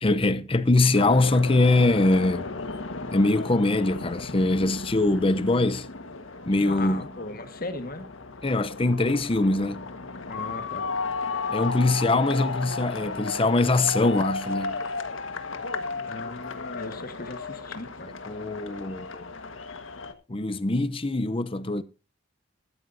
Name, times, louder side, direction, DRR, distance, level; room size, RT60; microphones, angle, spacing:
voice 1, 0.0-2.5 3.1-5.9 6.5-7.0 8.4-9.8 11.5-14.8 18.3-19.2 20.3-21.8, left 2 dB, 25° left, 0.7 m, -23 dB
sound 1, 0.9-20.1, left 4 dB, 80° left, 1.5 m, -34 dB
voice 2, 6.5-8.0 10.3-10.9 16.0-18.1, left 2 dB, 45° left, 1.6 m, -37 dB
14.0 x 14.0 x 2.7 m
head